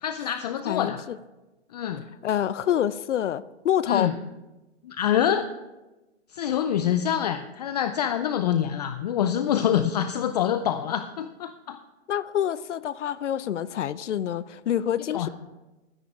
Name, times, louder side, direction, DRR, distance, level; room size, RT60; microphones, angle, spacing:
voice 1, 0.0-1.0 1.7-2.0 3.9-4.1 4.8-5.5 6.3-11.8 15.1-15.3, left 9 dB, 35° left, 10 dB, 0.5 m, -26 dB
voice 2, 0.6-1.2 2.2-4.1 12.1-15.3, left 10 dB, 85° left, 18 dB, 0.6 m, -27 dB
12.0 x 9.8 x 4.9 m, 1.1 s
hypercardioid pair, 150°, 35 cm